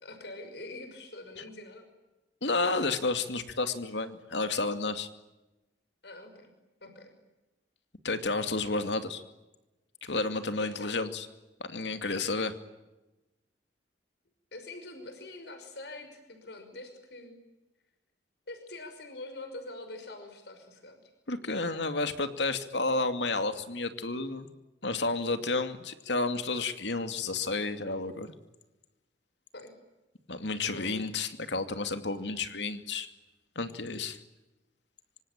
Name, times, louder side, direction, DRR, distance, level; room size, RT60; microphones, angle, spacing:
voice 1, 0.0-1.9 6.0-6.5 6.8-7.1 10.6-11.1 14.5-17.4 18.5-21.1 29.5-29.7 30.6-31.0, left 2 dB, 70° left, 7 dB, 5.8 m, -44 dB
voice 2, 2.4-5.1 8.0-9.2 10.0-11.3 11.6-12.5 21.3-24.5 24.8-28.3 30.3-33.1 33.6-34.2, left 3 dB, 90° left, 9 dB, 2.5 m, -31 dB
25.5 x 25.5 x 8.9 m, 1.0 s
head